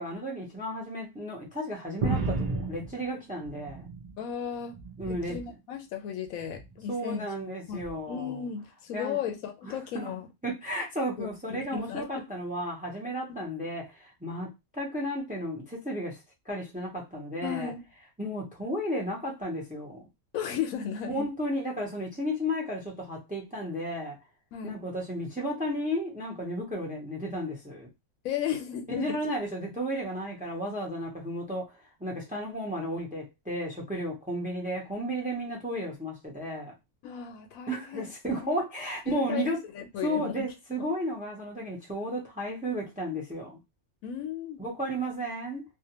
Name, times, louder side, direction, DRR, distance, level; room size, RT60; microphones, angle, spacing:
voice 1, 0.0-3.9 5.0-5.4 6.9-8.4 8.9-9.2 9.6-10.1 10.4-16.2 16.5-17.7 18.2-20.0 21.1-24.2 24.6-27.9 29.0-31.7 32.0-36.7 37.7-39.6 40.0-43.6 44.6-45.6, equal, 10° right, 0.4 m, -33 dB
sound 1, 2.0-4.2 4.6-5.5 6.4-6.8 7.8-7.9, right 3 dB, 85° right, 0.3 m, -33 dB
voice 2, 4.2-4.8 5.1-7.3 7.7-10.3 11.2-12.1 13.3-13.4 17.4-17.8 20.3-21.3 24.5-24.8 28.2-29.2 37.0-38.0 38.4-38.6 39.1-40.4 44.0-44.6, left 8 dB, 85° left, 1.0 m, -35 dB
2.4 x 2.2 x 2.8 m
omnidirectional pair, 1.4 m